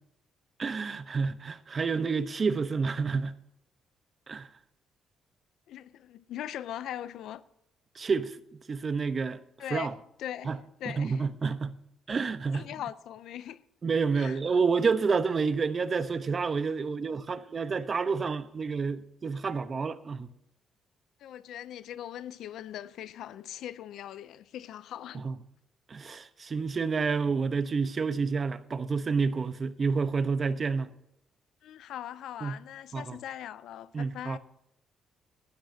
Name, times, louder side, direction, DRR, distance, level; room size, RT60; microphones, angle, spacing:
voice 1, 0.6-3.4 4.3-4.5 7.9-8.4 8.7-9.4 9.7-9.9 10.4-10.6 10.9-11.8 12.1-12.7 13.8-20.3 25.1-25.3 25.9-30.9 32.4-32.6 32.9-33.2 33.9-34.4, right 5 dB, 40° right, 0.9 m, -29 dB
voice 2, 5.7-7.4 9.6-10.5 10.8-11.3 12.5-13.6 14.1-14.6 21.2-25.2 31.6-34.4, left 11 dB, 80° left, 0.5 m, -40 dB
17.5 x 12.5 x 2.8 m
cardioid pair, 90°, 0 cm